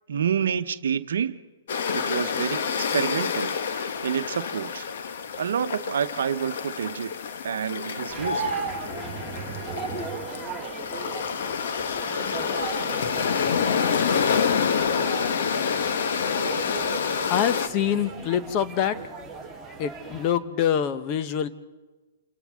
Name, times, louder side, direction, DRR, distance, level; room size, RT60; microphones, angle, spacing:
voice 1, 0.1-1.4 1.9-4.9 5.4-7.1 7.4-8.5, right 8 dB, 75° right, 11 dB, 0.8 m, -28 dB
sound 1, 1.7-17.7, left 6 dB, 65° left, 1.2 m, -28 dB
sound 2, 8.1-20.3, right 3 dB, 5° left, 3.4 m, -36 dB
voice 2, 17.3-19.0 19.8-21.5, left 9 dB, 35° left, 12 dB, 0.9 m, -25 dB
28.0 x 26.0 x 3.6 m, 1.2 s
hypercardioid pair, 140°, 0 cm